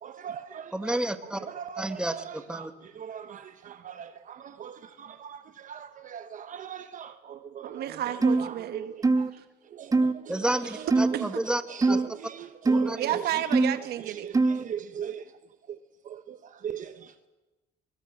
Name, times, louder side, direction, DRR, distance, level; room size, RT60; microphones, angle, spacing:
voice 1, 0.0-0.9 1.5-2.2 2.5-2.7 3.0-3.1 4.3-7.8 8.7-8.8 9.8-10.1 11.7-13.0 14.2-14.3 14.6-15.2 16.1-16.4 16.6-16.9, right 8 dB, 50° right, 1.0 m, -39 dB
voice 2, 0.7-1.4 1.8-2.7 10.3-11.6 11.9-12.0 12.7-13.0, right 1 dB, 5° right, 1.6 m, -30 dB
voice 3, 7.6-8.9 9.4-9.5 10.6-10.9 11.1-11.3 13.0-14.3, right 12 dB, 70° right, 1.2 m, -32 dB
sound 1, 8.2-8.5 9.0-9.3 9.9-10.1 10.9-11.2 11.8-12.1 12.7-12.9 13.5-13.8 14.3-14.6, right 3 dB, 20° right, 0.9 m, -22 dB
24.0 x 20.5 x 7.8 m
cardioid pair, 110°, 17 cm